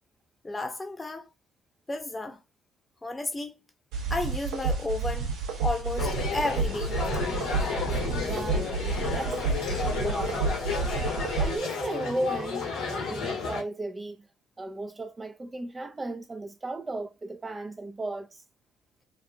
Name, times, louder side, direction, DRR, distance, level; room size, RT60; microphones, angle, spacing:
voice 1, 0.4-1.2 1.9-2.4 3.0-3.6 4.1-5.3 5.6-7.1, left 2 dB, 20° left, 0.8 m, -32 dB
sound 1, 3.9-11.6, right 4 dB, 70° right, 0.8 m, -30 dB
sound 2, 6.0-13.6, left 5 dB, 70° left, 1.2 m, -32 dB
voice 2, 8.2-9.4 10.0-10.4 11.4-14.3 14.6-18.4, right 2 dB, 25° right, 0.4 m, -35 dB
2.9 x 2.4 x 2.4 m
hypercardioid pair, 50°, 0 cm